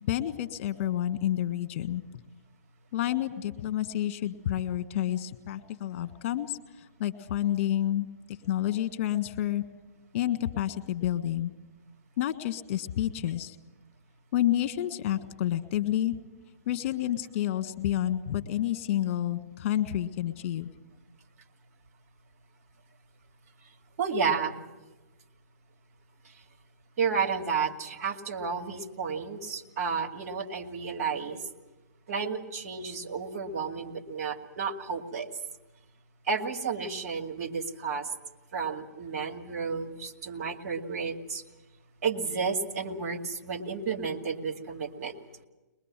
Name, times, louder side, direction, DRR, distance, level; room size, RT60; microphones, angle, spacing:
voice 1, 0.0-2.0 2.9-8.1 8.4-9.6 10.1-11.5 12.2-13.5 14.3-16.1 16.7-20.8, left 12 dB, 45° left, 9 dB, 1.7 m, -29 dB
voice 2, 24.0-24.5 27.0-31.4 32.1-35.3 36.3-38.1 38.5-41.4 42.0-45.1, right 5 dB, 60° right, 4 dB, 2.3 m, -31 dB
22.0 x 22.0 x 7.5 m, 1.1 s
hypercardioid pair, 135°, 9 cm